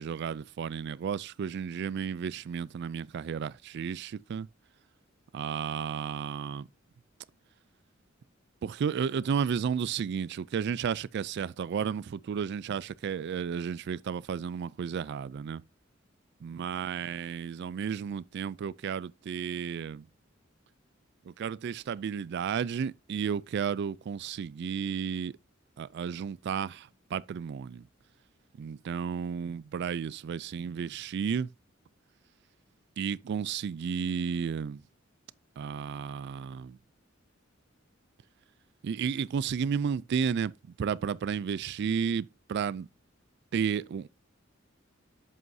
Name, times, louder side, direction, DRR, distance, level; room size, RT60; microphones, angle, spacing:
voice 1, 0.0-4.5 5.3-6.7 8.6-15.6 16.4-20.1 21.3-25.3 25.8-27.9 28.6-31.5 33.0-34.8 35.6-36.8 38.8-40.5 40.8-42.9 43.5-44.1, right 7 dB, 60° right, 0.3 m, -32 dB
7.8 x 7.8 x 2.7 m
head